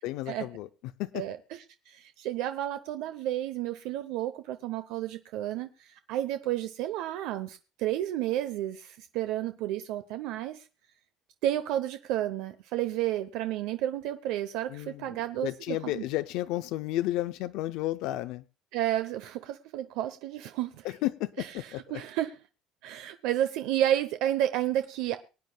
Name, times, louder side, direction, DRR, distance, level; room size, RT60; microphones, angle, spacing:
voice 1, 0.0-0.7 1.0-1.1 14.7-15.2 15.4-18.4 20.8-22.0, left 15 dB, 70° left, 0.5 m, -32 dB
voice 2, 1.1-10.6 11.4-16.1 18.7-20.9 21.4-22.4 22.8-25.2, right 12 dB, 70° right, 0.8 m, -31 dB
24.0 x 9.2 x 2.3 m
cardioid pair, 155°, 0 cm